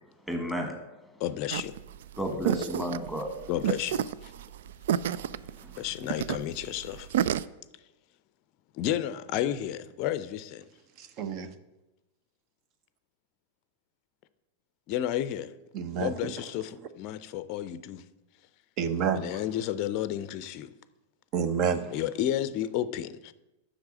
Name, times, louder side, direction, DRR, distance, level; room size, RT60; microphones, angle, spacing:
voice 1, 0.3-0.8 1.1-1.2 2.2-3.5 5.3-5.8, equal, ahead, 1.7 m, -33 dB
voice 2, 1.2-1.8 3.5-4.3 5.8-7.1 8.7-10.6 14.9-15.5 16.0-18.0 19.1-20.7 21.9-23.3, left 11 dB, 40° left, 0.5 m, -32 dB
sound 1, 1.5-7.4, right 10 dB, 55° right, 0.3 m, -30 dB
voice 3, 11.0-11.5 15.7-16.3 18.8-19.4 21.3-21.9, right 7 dB, 40° right, 0.9 m, -29 dB
8.0 x 6.4 x 7.5 m
figure-of-eight pair, 90°, 0 cm